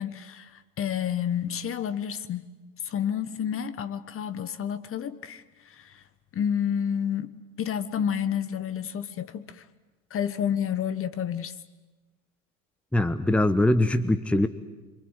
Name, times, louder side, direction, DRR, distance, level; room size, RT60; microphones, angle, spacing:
voice 1, 0.0-2.5 2.8-6.0 6.3-9.7 10.1-11.6, left 8 dB, 30° left, 1.3 m, -30 dB
voice 2, 12.9-14.5, left 1 dB, 5° left, 1.0 m, -22 dB
26.5 x 24.0 x 8.3 m
hypercardioid pair, 80°, 41 cm